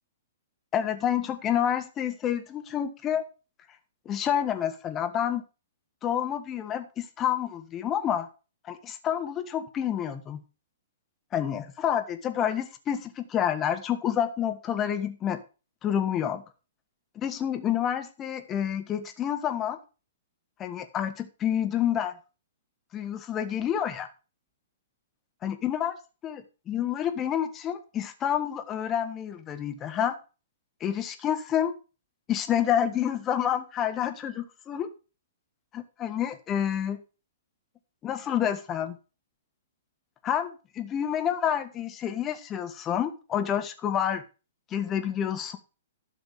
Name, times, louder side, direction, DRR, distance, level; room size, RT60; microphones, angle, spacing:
voice 1, 0.7-3.2 4.0-5.4 6.0-8.3 8.7-10.4 11.3-15.4 15.8-16.4 17.1-19.8 20.6-22.1 22.9-24.1 25.4-26.0 26.2-30.2 30.8-31.7 32.3-34.9 35.7-37.0 38.0-39.0 40.2-44.2 44.7-45.6, left 9 dB, 25° left, 8 dB, 1.5 m, -28 dB
12.0 x 6.2 x 4.9 m, 0.32 s
figure-of-eight pair, 115°, 0 cm